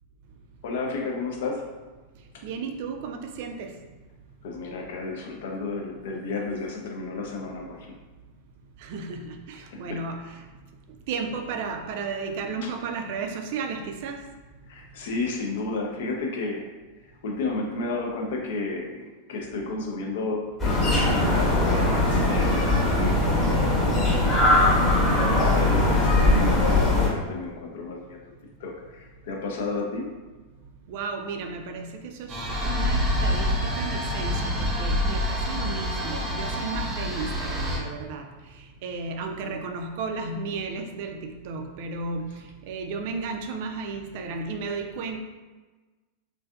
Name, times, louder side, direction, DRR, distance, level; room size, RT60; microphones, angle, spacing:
voice 1, 0.6-1.6 2.3-2.4 4.4-7.9 9.7-10.0 12.6-12.7 14.7-16.7 17.2-24.5 25.1-28.2 28.6-30.1, left 3 dB, 55° left, 1 dB, 0.5 m, -32 dB
voice 2, 2.4-3.7 8.8-10.4 11.1-14.2 30.9-38.3 38.8-42.2 42.7-45.2, right 4 dB, 50° right, 4 dB, 0.3 m, -33 dB
sound 1, 20.6-27.1, left 2 dB, 20° left, 1.0 m, -21 dB
sound 2, 32.3-37.8, equal, 15° right, 0.8 m, -27 dB
3.2 x 2.5 x 2.3 m, 1.3 s
figure-of-eight pair, 90°, 0 cm